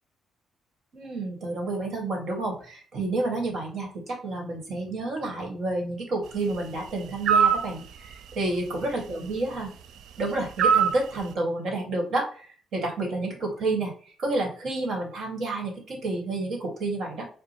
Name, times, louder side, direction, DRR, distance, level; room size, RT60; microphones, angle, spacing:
voice 1, 0.9-9.7 10.2-13.9 14.2-17.3, right 2 dB, 60° right, 1 dB, 1.5 m, -30 dB
sound 1, 7.3-7.7 10.6-11.0, right 7 dB, 75° right, 0.3 m, -20 dB
4.8 x 2.2 x 2.8 m, 0.43 s
cardioid pair, 140°, 0 cm